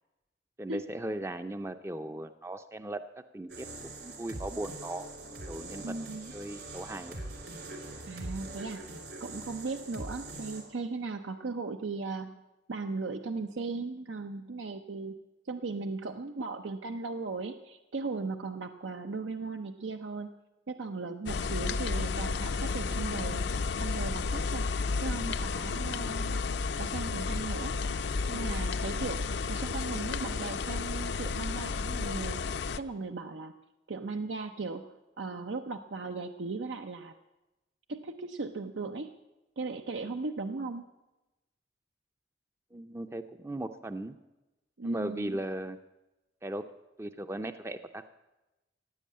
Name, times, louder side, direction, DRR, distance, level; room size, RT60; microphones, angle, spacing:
voice 1, 0.6-3.0 3.3-5.1 5.5-5.8 6.3-7.1 42.7-44.2 44.8-45.8 46.4-46.7 47.0-48.1, right 1 dB, 15° right, 9 dB, 0.4 m, -37 dB
sound 1, 3.5-10.6, right 2 dB, 65° right, 3.1 m, -43 dB
voice 2, 5.8-6.3 8.1-8.8 9.2-12.4 12.7-15.2 15.5-20.3 20.7-23.4 23.7-24.7 25.0-26.4 26.8-27.8 28.3-32.4 32.7-33.5 33.9-37.1 37.9-39.2 39.6-40.9 44.8-45.4, right 3 dB, 90° right, 7 dB, 0.7 m, -37 dB
sound 2, 21.3-32.8, left 4 dB, 70° left, 0.5 m, -32 dB
15.5 x 9.2 x 8.5 m, 1.0 s
head